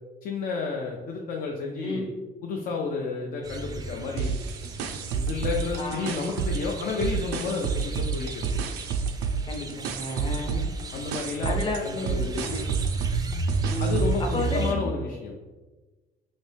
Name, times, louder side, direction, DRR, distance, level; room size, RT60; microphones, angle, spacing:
voice 1, 0.2-2.1 2.4-4.3 5.1-8.6 10.9-11.6 11.8-12.5 13.8-15.3, left 4 dB, 60° left, 0 dB, 0.5 m, -31 dB
voice 2, 1.8-2.1 5.7-6.1 9.5-10.6 11.4-12.9 13.6-14.0 14.3-14.9, left 2 dB, 30° left, 2 dB, 0.7 m, -32 dB
sound 1, 3.4-14.8, right 4 dB, 20° right, 0.4 m, -34 dB
sound 2, 4.2-6.7 7.0-14.3, right 5 dB, 90° right, 0.4 m, -30 dB
4.1 x 2.7 x 3.3 m, 1.2 s
cardioid pair, 110°, 17 cm